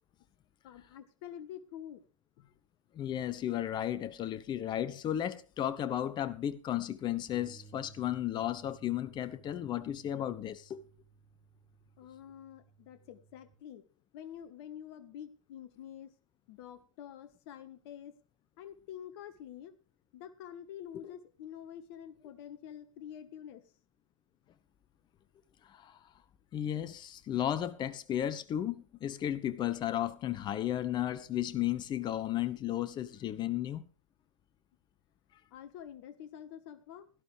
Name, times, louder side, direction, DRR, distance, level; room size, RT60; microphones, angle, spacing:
voice 1, 0.6-2.0 2.4-2.5 12.0-13.8 14.1-16.1 16.5-18.2 18.6-19.7 20.1-23.6 35.5-37.1, left 10 dB, 50° left, 1.5 m, -47 dB
voice 2, 2.9-10.8 25.7-26.0 26.5-33.8, left 11 dB, 25° left, 1.0 m, -34 dB
sound 1, 7.3-13.5, right 5 dB, 5° right, 3.0 m, -59 dB
17.0 x 12.0 x 3.3 m
figure-of-eight pair, 105°, 17 cm